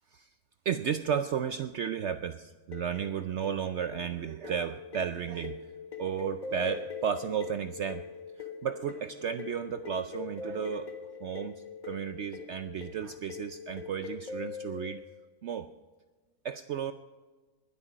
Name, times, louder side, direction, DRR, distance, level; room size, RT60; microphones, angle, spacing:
voice 1, 0.7-5.6 6.0-8.0 8.4-10.9 11.2-11.5 11.8-15.0 15.4-15.7 16.4-16.9, right 8 dB, 65° right, 10 dB, 0.7 m, -33 dB
sound 1, 2.7-15.0, left 6 dB, 30° left, 1.4 m, -43 dB
20.5 x 8.4 x 5.0 m, 1.3 s
omnidirectional pair, 1.6 m